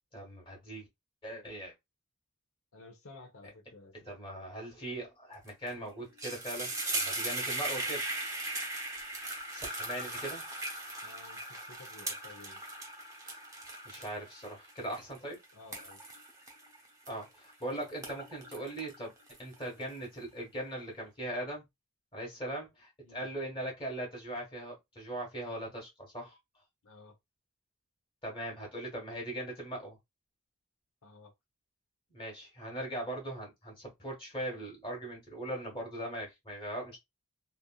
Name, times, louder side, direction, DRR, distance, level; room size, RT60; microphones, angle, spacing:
voice 1, 0.1-0.9 1.2-1.7 4.0-8.0 9.5-10.4 13.8-15.4 17.1-19.1 19.4-21.6 22.1-26.4 28.2-30.0 32.1-37.0, right 1 dB, 25° left, 1.6 m, -40 dB
voice 2, 2.7-4.1 11.0-12.6 15.5-16.0 23.0-23.3 26.8-27.1 31.0-31.3, left 3 dB, 70° left, 1.0 m, -53 dB
sound 1, 5.5-5.7 6.0-17.5 17.9-19.8, right 2 dB, 15° right, 0.8 m, -38 dB
3.4 x 2.6 x 2.4 m
head